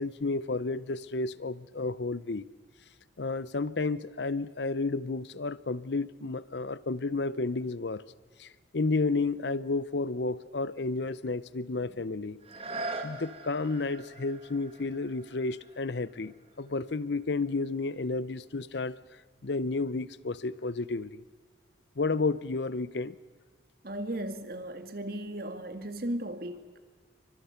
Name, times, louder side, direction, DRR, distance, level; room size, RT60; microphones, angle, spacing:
voice 1, 0.0-2.4 3.2-8.0 8.4-12.4 13.0-19.0 19.4-21.2 22.0-23.1, left 3 dB, 65° left, 0.7 m, -31 dB
sound 1, 12.4-18.0 18.6-18.7, right 2 dB, 30° right, 2.1 m, -43 dB
voice 2, 23.8-26.8, right 1 dB, 50° right, 1.8 m, -36 dB
28.5 x 24.5 x 5.8 m
head